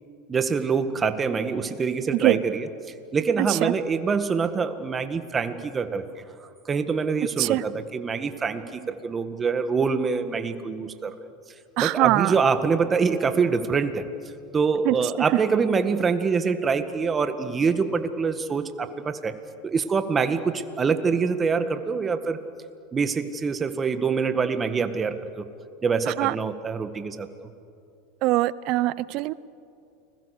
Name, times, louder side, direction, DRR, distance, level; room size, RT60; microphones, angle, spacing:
voice 1, 0.3-2.7 3.1-11.1 11.8-14.1 14.5-19.4 19.6-22.4 22.9-25.4 25.8-27.3, right 5 dB, 25° right, 9 dB, 1.8 m, -25 dB
voice 2, 3.4-3.7 7.4-7.6 11.8-12.3 14.8-15.0 26.1-26.3 28.2-29.3, right 18 dB, 55° right, 20 dB, 0.7 m, -22 dB
30.0 x 21.0 x 6.7 m, 2.5 s
hypercardioid pair, 100°, 0 cm